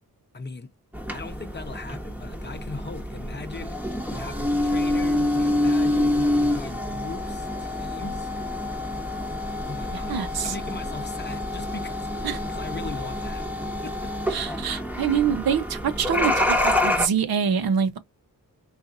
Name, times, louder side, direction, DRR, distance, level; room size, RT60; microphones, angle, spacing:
voice 1, 0.3-0.7 1.1-3.8 4.1-8.3 9.7-10.2 10.4-12.1 12.5-13.5 13.8-14.1, left 3 dB, 30° left, 0.7 m, -39 dB
sound 1, 0.9-17.1, left 1 dB, 5° right, 0.9 m, -27 dB
voice 2, 9.9-10.5 12.2-12.4 14.3-18.0, right 7 dB, 85° right, 0.8 m, -25 dB
4.0 x 2.4 x 2.6 m
wide cardioid pair, 120°, 35 cm